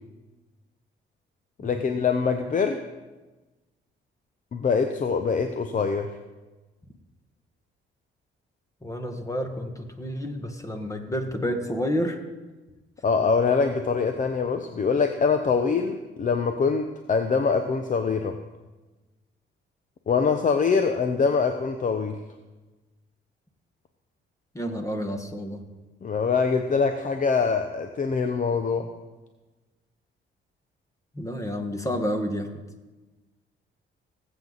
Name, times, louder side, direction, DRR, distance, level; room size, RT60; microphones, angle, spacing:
voice 1, 1.6-2.8 4.5-6.1 13.0-18.4 20.1-22.2 26.0-28.9, left 5 dB, 40° left, 7 dB, 0.8 m, -24 dB
voice 2, 8.8-12.2 24.5-25.6 31.1-32.5, equal, 15° left, 5 dB, 1.6 m, -30 dB
19.0 x 8.0 x 4.1 m, 1.2 s
cardioid pair, 90°, 20 cm